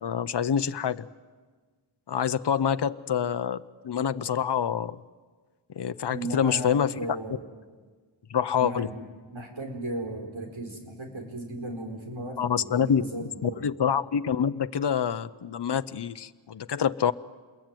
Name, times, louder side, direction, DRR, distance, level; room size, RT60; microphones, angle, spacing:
voice 1, 0.0-1.0 2.1-5.0 5.8-6.9 8.3-8.9 12.4-17.1, left 8 dB, 60° left, 12 dB, 0.8 m, -26 dB
voice 2, 6.1-7.4 8.6-9.1 9.3-13.7, right 1 dB, 75° right, 3 dB, 4.9 m, -36 dB
27.5 x 22.0 x 9.1 m, 1.4 s
wide cardioid pair, 50°, 47 cm